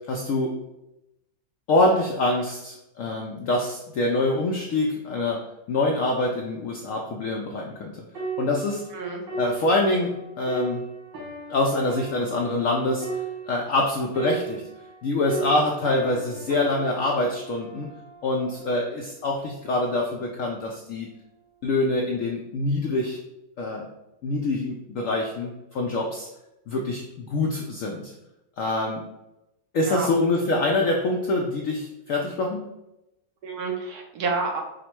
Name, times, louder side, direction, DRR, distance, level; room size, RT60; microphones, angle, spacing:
voice 1, 0.1-0.6 1.7-8.0 8.4-8.8 9.4-10.8 11.5-13.1 13.5-14.6 15.0-17.9 18.2-21.1 21.6-23.2 23.6-23.9 24.2-26.3 26.7-28.1 28.6-29.0 29.7-32.6, left 2 dB, 75° left, 0 dB, 0.7 m, -25 dB
sound 1, 8.1-15.0 15.3-18.9 19.5-19.7, right 5 dB, 85° right, 2.3 m, -36 dB
voice 2, 8.9-9.2 29.9-30.1 33.4-34.6, right 4 dB, 65° right, 1 dB, 1.2 m, -29 dB
5.1 x 2.2 x 4.3 m, 0.91 s
omnidirectional pair, 1.9 m